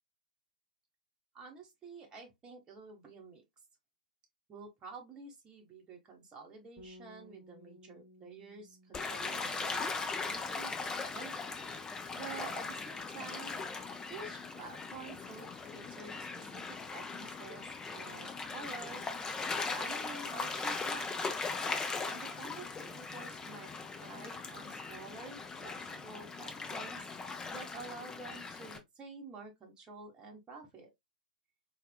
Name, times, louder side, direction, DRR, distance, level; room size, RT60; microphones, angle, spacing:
voice 1, 1.3-3.4 4.5-11.3 12.1-13.5 14.1-19.0 19.7-21.2 22.1-23.7 24.0-27.0 27.5-30.9, right 4 dB, 20° right, 1.0 m, -49 dB
Bass guitar, 6.8-13.0, equal, ahead, 1.7 m, -60 dB
Gull seagull / Waves surf, 8.9-28.8, left 4 dB, 15° left, 0.6 m, -39 dB
4.1 x 2.4 x 2.3 m
figure-of-eight pair, 115°, 5 cm